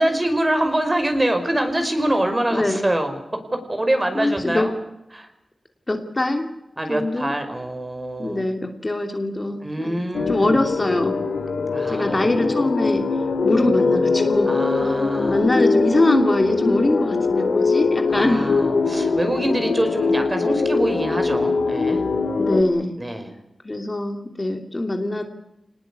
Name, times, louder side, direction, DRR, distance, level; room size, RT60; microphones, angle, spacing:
voice 1, 0.0-4.7 5.1-5.3 6.8-8.5 9.6-10.6 11.7-12.3 14.5-15.4 18.1-22.0 23.0-23.3, right 1 dB, 25° right, 6 dB, 5.1 m, -24 dB
voice 2, 2.5-2.8 4.1-4.7 5.9-6.5 6.9-7.3 8.2-11.2 11.9-13.1 13.4-14.5 15.3-18.5 22.4-22.9 23.6-25.2, left 1 dB, 30° left, 5 dB, 2.9 m, -22 dB
sound 1, 10.1-22.6, left 4 dB, 90° left, 2.1 m, -22 dB
24.5 x 19.5 x 8.4 m, 0.89 s
wide cardioid pair, 65°, 0 cm